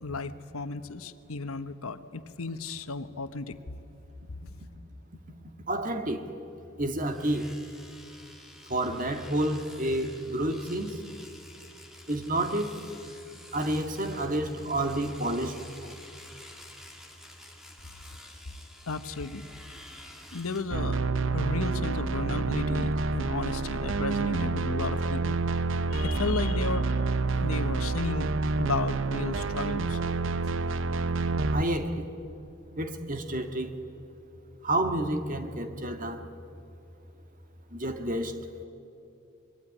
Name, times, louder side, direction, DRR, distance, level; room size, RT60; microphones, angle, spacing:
voice 1, 0.0-3.6 18.9-19.4 20.3-21.0 21.3-25.4 25.9-26.9 27.4-28.3 28.6-30.0, left 3 dB, 85° left, 1.2 m, -34 dB
voice 2, 5.7-6.2 6.8-7.6 8.7-11.0 12.1-12.8 13.5-15.5 31.5-32.0 32.8-33.7 34.6-36.2 37.7-38.3, right 1 dB, 40° right, 1.9 m, -29 dB
Domestic sounds home sounds, 7.0-20.6, left 1 dB, ahead, 2.6 m, -50 dB
sound 1, 20.7-31.6, right 3 dB, 60° right, 0.7 m, -28 dB
25.0 x 22.5 x 9.9 m
head